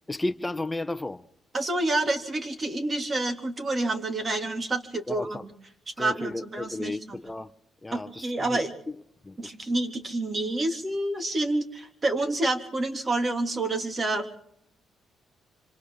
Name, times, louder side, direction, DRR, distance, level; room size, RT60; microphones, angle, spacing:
voice 1, 0.1-1.2 5.1-5.5 6.0-7.5 7.8-9.0 9.2-9.5, left 2 dB, 15° left, 1.1 m, -33 dB
voice 2, 1.5-5.4 6.0-7.0 7.9-8.7 9.4-14.4, right 2 dB, 30° right, 3.2 m, -28 dB
26.5 x 26.0 x 4.0 m
cardioid pair, 90°, 0 cm